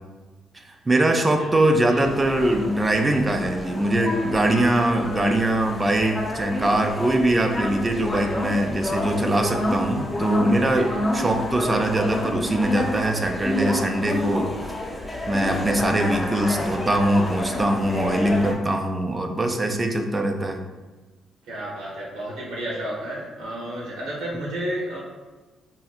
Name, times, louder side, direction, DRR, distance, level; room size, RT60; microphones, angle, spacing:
voice 1, 0.5-14.5 15.3-20.6, right 1 dB, 25° right, 4 dB, 0.4 m, -22 dB
voice 2, 1.1-1.5 1.9-2.1 10.7-10.8 21.5-25.0, right 1 dB, 90° right, -4 dB, 1.1 m, -32 dB
sound 1, 2.0-18.5, left 1 dB, 20° left, 0.8 m, -29 dB
4.2 x 2.7 x 2.4 m, 1.2 s
cardioid pair, 90°, 0 cm